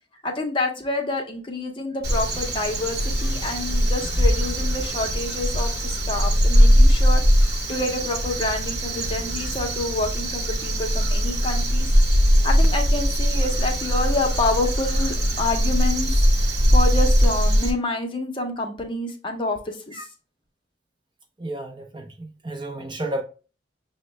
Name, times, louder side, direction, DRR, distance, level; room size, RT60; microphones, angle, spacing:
voice 1, 0.2-11.9 12.4-16.1 16.4-20.1, left 2 dB, 25° left, 0.6 m, -28 dB
Crow, 2.0-17.7, equal, 60° right, 0.9 m, -20 dB
voice 2, 21.4-23.2, right 1 dB, 25° right, 0.5 m, -32 dB
6.2 x 2.1 x 3.2 m
head